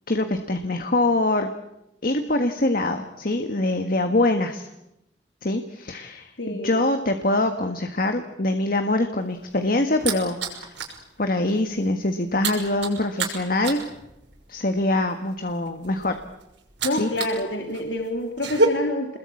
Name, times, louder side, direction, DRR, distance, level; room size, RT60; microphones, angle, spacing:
voice 1, 0.1-1.5 2.0-4.7 5.4-10.7 11.2-13.8 14.5-16.1 16.9-17.3, left 2 dB, 50° left, 6 dB, 1.7 m, -24 dB
voice 2, 6.4-6.8 16.8-19.2, left 1 dB, 80° left, 2 dB, 3.1 m, -27 dB
sound 1, 9.2-11.0 11.4-11.6 11.8-17.4 17.7-18.7, right 3 dB, 85° right, 6.2 m, -29 dB
28.5 x 21.5 x 8.6 m, 0.87 s
head